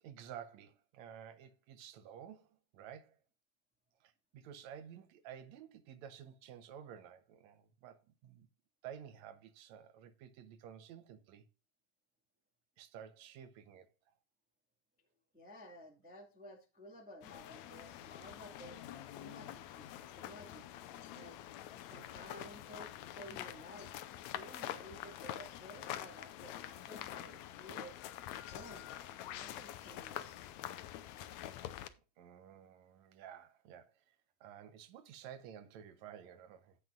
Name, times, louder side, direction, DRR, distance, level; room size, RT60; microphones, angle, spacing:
voice 1, 0.0-3.2 4.0-8.5 8.8-11.5 12.8-13.9 32.2-34.2 34.4-36.8, right 9 dB, 70° right, 2.0 m, -52 dB
voice 2, 15.3-20.6 21.1-21.4 21.8-23.9 24.3-28.0 28.4-28.9 29.2-30.3, equal, 5° right, 0.9 m, -54 dB
sound 1, 17.2-31.9, left 12 dB, 75° left, 1.8 m, -46 dB
16.0 x 5.9 x 2.4 m
omnidirectional pair, 3.6 m